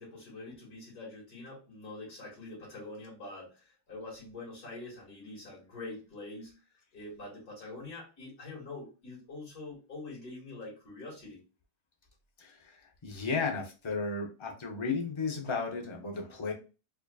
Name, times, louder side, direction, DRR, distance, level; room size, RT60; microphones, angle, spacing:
voice 1, 0.0-11.4, left 2 dB, 65° left, -5 dB, 2.6 m, -45 dB
voice 2, 13.0-16.5, left 4 dB, 40° left, 1 dB, 0.4 m, -34 dB
4.8 x 2.5 x 2.3 m, 0.32 s
omnidirectional pair, 1.7 m